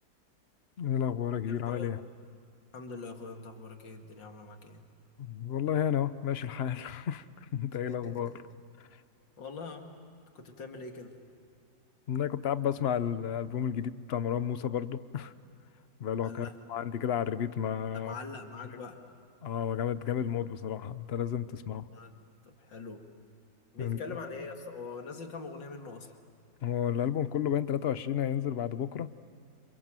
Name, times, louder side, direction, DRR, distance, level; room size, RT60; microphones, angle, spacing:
voice 1, 0.8-2.0 5.2-7.2 7.5-8.3 12.1-15.3 16.0-18.1 19.4-21.9 23.8-24.0 26.6-29.1, left 9 dB, 50° left, 13 dB, 0.7 m, -31 dB
voice 2, 1.4-2.0 2.7-4.9 7.9-8.4 9.4-9.9 10.3-11.2 16.2-16.6 17.9-19.0 21.9-22.1 22.4-23.0 23.7-26.1, left 4 dB, 75° left, 4 dB, 2.9 m, -43 dB
29.0 x 27.0 x 7.6 m, 2.5 s
omnidirectional pair, 2.0 m